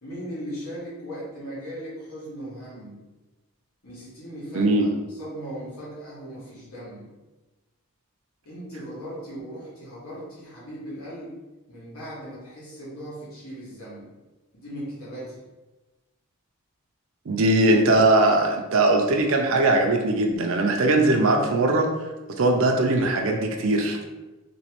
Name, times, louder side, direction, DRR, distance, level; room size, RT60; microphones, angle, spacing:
voice 1, 0.0-3.0 3.8-7.0 8.4-11.4 11.7-14.1 14.5-15.4, equal, 80° left, -9 dB, 1.4 m, -38 dB
voice 2, 4.5-4.9 17.3-21.9 22.4-24.0, right 2 dB, 65° right, 2 dB, 0.5 m, -20 dB
3.1 x 3.1 x 3.0 m, 1.1 s
head